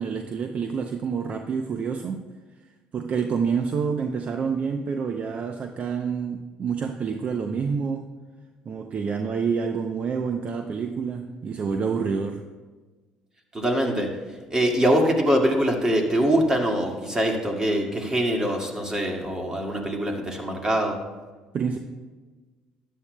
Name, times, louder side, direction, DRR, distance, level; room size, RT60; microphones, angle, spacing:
voice 1, 0.0-2.2 2.9-8.0 8.7-12.4 21.5-21.8, right 6 dB, 45° right, 6 dB, 0.6 m, -28 dB
voice 2, 13.5-21.0, equal, 20° right, 1 dB, 2.0 m, -23 dB
13.0 x 10.0 x 2.2 m, 1.3 s
supercardioid pair, 80°, 3 cm